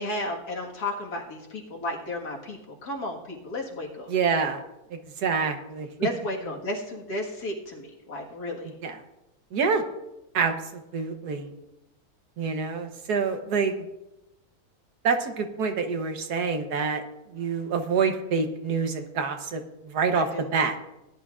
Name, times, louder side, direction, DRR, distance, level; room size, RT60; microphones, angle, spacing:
voice 1, 0.0-4.1 6.0-8.7 20.1-20.5, left 1 dB, 80° left, 0 dB, 2.2 m, -33 dB
voice 2, 4.1-4.6 4.9-5.9 8.8-9.0 9.5-9.8 10.3-11.5 12.4-13.9 15.0-17.0 17.3-20.8, right 5 dB, 85° right, 6 dB, 1.6 m, -27 dB
18.5 x 10.5 x 2.5 m, 0.92 s
omnidirectional pair, 1.6 m